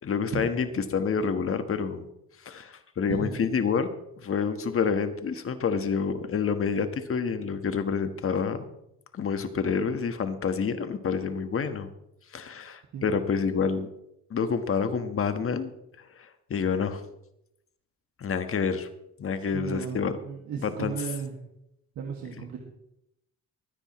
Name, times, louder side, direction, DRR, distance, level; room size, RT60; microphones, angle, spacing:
voice 1, 0.0-2.0 2.4-3.9 4.2-8.7 9.1-11.9 12.3-13.9 14.3-15.7 16.0-17.0 18.2-18.9 19.2-20.2 20.6-20.9, left 6 dB, 45° left, 9 dB, 1.4 m, -28 dB
voice 2, 19.5-21.3 22.0-22.6, right 7 dB, 70° right, 0 dB, 2.1 m, -35 dB
24.0 x 9.9 x 3.2 m, 0.81 s
cardioid pair, 90°, 30 cm